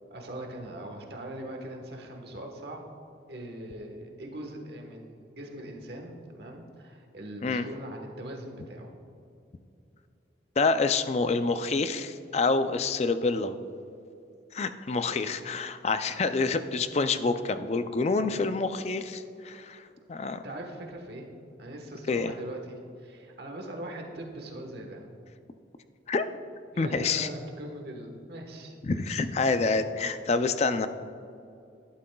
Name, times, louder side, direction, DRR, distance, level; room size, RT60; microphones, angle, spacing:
voice 1, 0.1-2.8 3.3-8.9 20.4-21.3 21.6-25.0 26.7-29.2 29.4-29.5, right 1 dB, 55° right, 2 dB, 1.3 m, -41 dB
voice 2, 10.6-13.6 14.5-19.8 20.1-20.4 22.1-22.3 26.1-26.3 26.8-27.3 28.8-30.9, left 3 dB, 35° left, 10 dB, 0.4 m, -27 dB
12.5 x 11.5 x 2.3 m, 2.6 s
head